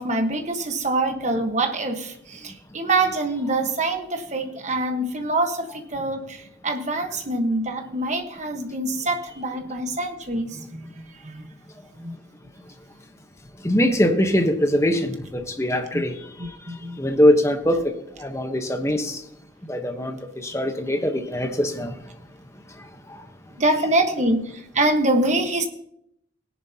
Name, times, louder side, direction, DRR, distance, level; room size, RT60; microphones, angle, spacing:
voice 1, 0.0-10.9 11.2-11.5 12.0-12.1 15.9-16.0 16.4-17.0 23.6-25.7, right 2 dB, 40° right, 5 dB, 1.3 m, -25 dB
voice 2, 13.6-16.5 17.0-17.8 18.2-19.2 19.7-21.9, left 1 dB, 15° left, 5 dB, 1.0 m, -22 dB
18.5 x 10.5 x 2.9 m, 0.74 s
head